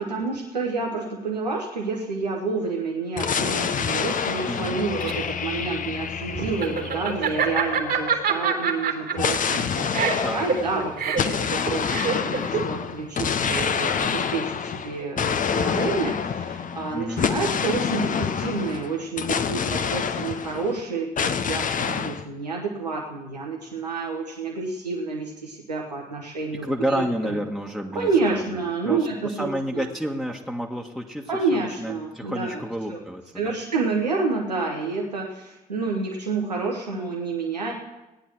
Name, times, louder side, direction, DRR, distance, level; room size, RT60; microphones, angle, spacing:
voice 1, 0.0-27.3 27.9-29.8 31.3-32.6 32.9-33.0 33.4-37.7, right 4 dB, 90° right, 0 dB, 1.0 m, -29 dB
sound 1, 3.2-7.9 9.2-20.8 21.2-22.2, left 6 dB, 40° left, 0.9 m, -27 dB
voice 2, 4.4-4.9 10.2-10.5 16.9-17.3 26.6-28.6 28.8-33.5, equal, ahead, -1 dB, 1.6 m, -30 dB
Laughter, 4.6-14.0, right 6 dB, 50° right, 2.1 m, -27 dB
17.0 x 9.8 x 4.6 m, 1.0 s
figure-of-eight pair, 45°, 20 cm